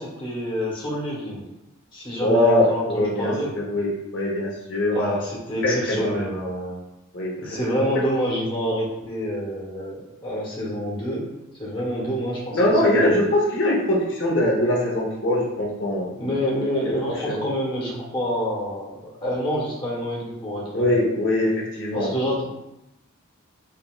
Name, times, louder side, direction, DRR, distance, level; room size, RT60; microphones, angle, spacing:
voice 1, 0.0-1.4 1.9-3.5 4.9-6.8 7.4-11.2 11.6-13.1 16.2-21.0 21.9-22.4, equal, 25° left, -5 dB, 1.2 m, -27 dB
voice 2, 2.2-3.3 3.7-5.1 5.6-6.2 7.1-7.3 12.5-16.1 17.3-17.4 20.7-22.1, left 1 dB, 60° left, -3 dB, 1.0 m, -22 dB
5.3 x 2.7 x 2.4 m, 0.92 s
head